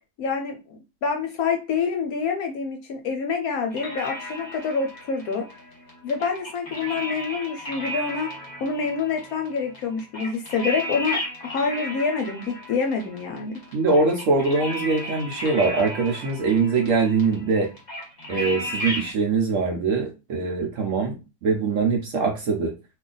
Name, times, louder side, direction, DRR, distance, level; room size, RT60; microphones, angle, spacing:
voice 1, 0.2-5.4 6.0-13.6, left 5 dB, 70° left, 3 dB, 1.0 m, -27 dB
sound 1, 3.7-19.1, equal, 30° left, 1.0 m, -35 dB
voice 2, 13.7-17.7 18.3-22.7, right 4 dB, 65° right, 2 dB, 0.8 m, -23 dB
2.6 x 2.4 x 3.8 m, 0.28 s
omnidirectional pair, 1.8 m